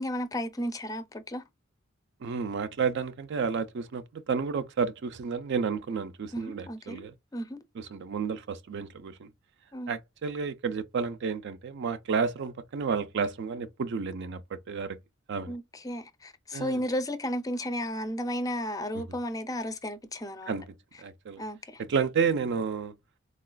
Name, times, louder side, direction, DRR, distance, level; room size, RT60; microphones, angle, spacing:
voice 1, 0.0-1.4 6.3-7.1 7.3-7.6 9.7-9.9 15.5-20.6 21.4-21.8, equal, 20° left, 0.4 m, -33 dB
voice 2, 2.2-7.1 7.8-9.3 9.9-14.4 14.7-15.0 15.3-15.6 16.5-16.8 20.5-20.6 21.0-21.4 21.9-22.9, right 5 dB, 60° right, 0.4 m, -31 dB
3.9 x 2.3 x 2.2 m
head